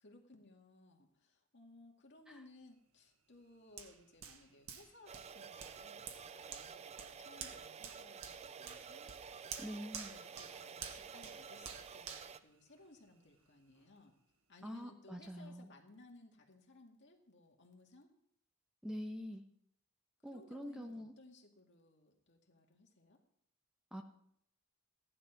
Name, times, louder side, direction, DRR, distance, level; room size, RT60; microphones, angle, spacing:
voice 1, 0.0-9.1 9.6-9.7 10.1-14.1 14.5-18.1 20.2-23.2, left 2 dB, 55° left, 2 dB, 2.2 m, -61 dB
Hands, 3.8-13.3 13.8-13.9, right 7 dB, 80° right, 1.6 m, -51 dB
sound 1, 5.1-12.4, right 6 dB, 30° right, 0.4 m, -51 dB
voice 2, 9.6-10.1 14.6-15.7 18.8-19.4 20.2-21.1 23.9-24.0, equal, 5° right, 3 dB, 1.2 m, -45 dB
15.5 x 11.0 x 4.7 m, 0.71 s
head